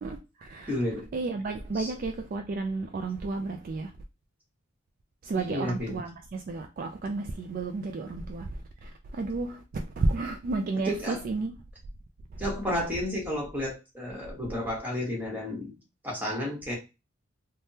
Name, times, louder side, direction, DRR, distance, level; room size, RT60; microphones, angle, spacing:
voice 1, 0.0-0.8 1.1-3.9 5.2-11.5, right 3 dB, 45° right, 0.3 m, -32 dB
voice 2, 0.7-1.0 1.7-1.9 5.3-6.0 10.8-11.2 12.4-15.8 16.0-16.8, left 1 dB, 10° right, 1.2 m, -32 dB
3.4 x 2.2 x 2.7 m
head